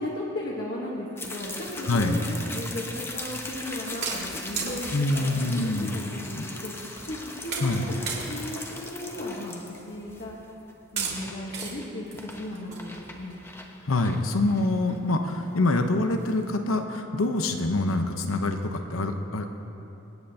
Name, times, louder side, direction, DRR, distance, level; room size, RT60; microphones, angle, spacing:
voice 1, 0.0-6.8 7.1-10.4 10.9-13.4, left 1 dB, 50° left, -5 dB, 1.3 m, -36 dB
pouring water into the bucket, 1.2-16.5, left 2 dB, 10° left, 0.8 m, -40 dB
voice 2, 1.9-2.3 4.9-5.9 6.4-6.5 7.6-7.8 13.8-19.6, left 2 dB, 85° left, 5 dB, 0.9 m, -25 dB
sound 1, 4.0-5.1 6.0-6.1 6.4-6.5 7.0-7.2 7.5-7.8 8.1-8.6 9.0-9.1 10.1-10.2 11.0-11.2 11.5-11.7 12.1-13.6 14.1-14.2 14.6-14.7 14.9-15.0 15.3-15.6, right 5 dB, 55° right, 2.3 m, -35 dB
25.0 x 9.0 x 2.8 m, 2.9 s
head